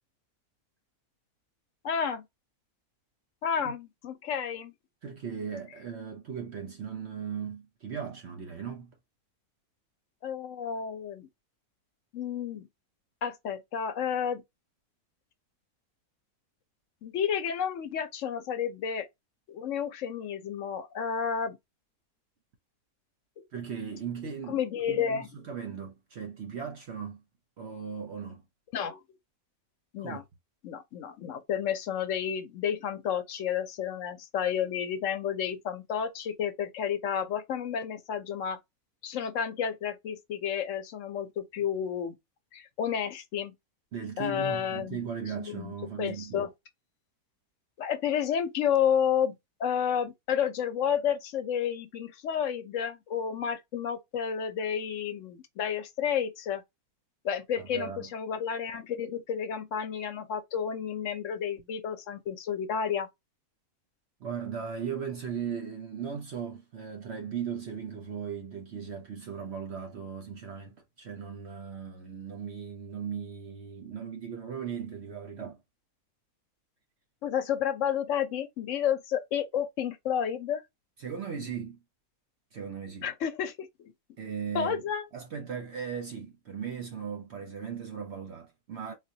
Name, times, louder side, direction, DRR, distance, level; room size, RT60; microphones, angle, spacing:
voice 1, 1.8-2.2 3.4-4.7 10.2-11.3 12.1-12.7 13.2-14.4 17.0-19.1 19.5-21.6 23.4-23.5 24.5-25.3 28.7-29.0 29.9-30.2 30.6-38.6 39.0-42.2 42.5-43.5 44.2-45.0 45.4-45.7 46.0-46.5 47.8-56.6 57.2-63.1 77.2-80.6 83.0-83.9 84.5-85.1, left 8 dB, 65° left, 0.9 m, -31 dB
voice 2, 5.0-8.9 23.5-27.2 27.6-28.4 30.0-30.2 43.9-46.5 57.6-58.1 64.2-75.6 81.0-81.8 82.5-83.1 84.2-84.8 85.1-88.9, right 7 dB, 60° right, 0.8 m, -38 dB
3.9 x 2.3 x 2.7 m
omnidirectional pair, 1.6 m